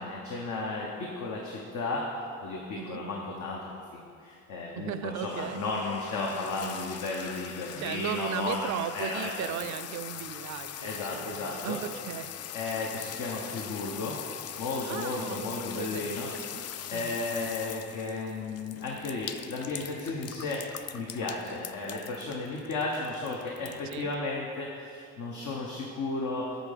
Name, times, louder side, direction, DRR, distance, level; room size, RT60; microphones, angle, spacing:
voice 1, 0.0-2.1 2.4-9.5 10.8-11.8 12.5-14.2 14.6-16.3 16.9-20.6 20.9-26.5, left 3 dB, 75° left, -2 dB, 1.1 m, -34 dB
voice 2, 4.8-5.6 7.8-12.3 14.8-16.6 16.9-17.2 23.6-24.1, right 12 dB, 70° right, 13 dB, 0.4 m, -37 dB
sound 1, 5.3-24.1, left 10 dB, 55° left, 0.4 m, -42 dB
9.2 x 4.1 x 6.7 m, 2.3 s
cardioid pair, 90°, 30 cm